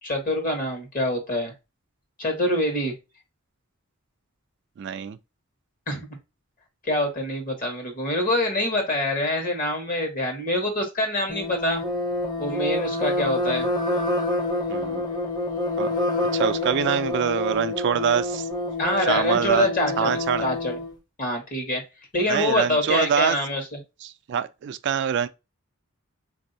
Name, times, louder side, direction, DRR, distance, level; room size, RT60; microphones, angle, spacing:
voice 1, 0.0-1.5 2.2-2.9 5.9-6.2 6.8-11.8 12.4-13.7 18.8-20.1 20.4-20.8 21.2-21.8 22.1-23.8, left 1 dB, 40° left, 1.2 m, -25 dB
voice 2, 4.8-5.2 14.7-15.0 15.8-15.9 16.3-18.5 19.1-19.7 20.0-20.5 22.3-23.4 24.0-25.3, right 8 dB, 55° right, 0.3 m, -25 dB
sound 1, 11.3-20.9, left 2 dB, 20° left, 0.8 m, -27 dB
4.0 x 2.6 x 2.6 m
head